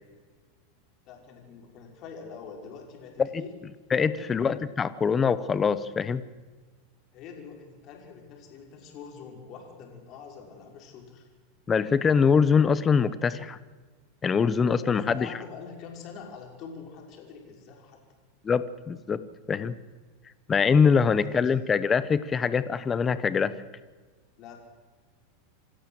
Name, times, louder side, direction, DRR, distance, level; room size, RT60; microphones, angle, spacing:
voice 1, 1.1-3.6 4.0-4.3 7.1-11.3 14.8-18.0 21.1-21.6 24.4-24.6, left 5 dB, 40° left, 1 dB, 5.6 m, -45 dB
voice 2, 3.9-6.2 11.7-13.6 14.2-15.3 18.4-19.2 19.5-19.7 20.5-23.5, left 6 dB, 20° left, 15 dB, 1.0 m, -23 dB
27.0 x 13.5 x 7.9 m, 1.4 s
supercardioid pair, 140°, 0 cm